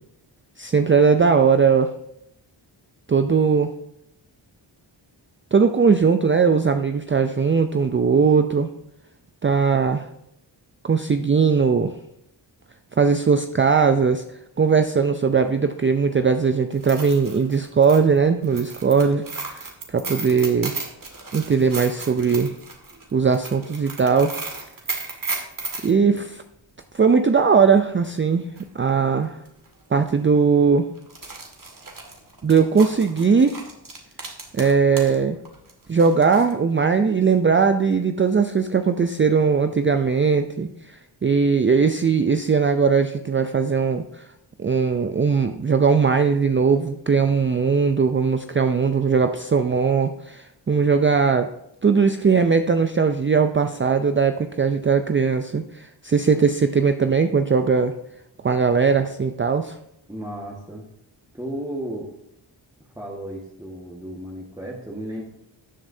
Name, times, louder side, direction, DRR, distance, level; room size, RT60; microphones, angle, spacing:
voice 1, 0.6-1.9 3.1-3.7 5.5-8.7 9.4-10.1 10.8-11.9 13.0-14.2 14.6-19.2 19.9-20.7 21.3-22.5 23.1-24.3 25.8-26.4 26.9-28.5 28.7-29.4 29.9-30.9 32.4-33.6 34.5-35.4 35.9-40.7 41.2-44.3 44.6-51.5 51.8-57.9 58.4-59.8, right 5 dB, 25° right, 8 dB, 0.5 m, -19 dB
sound 1, 16.7-25.9 28.1-28.2 28.6-28.7 29.5-29.7 30.0-30.1 31.0-35.2 35.5-36.5, right 3 dB, 40° right, 2.1 m, -35 dB
voice 2, 60.1-60.9 61.3-62.1 62.9-65.2, right 1 dB, 5° right, -3 dB, 1.6 m, -34 dB
13.5 x 7.3 x 2.8 m, 0.79 s
cardioid pair, 50°, 48 cm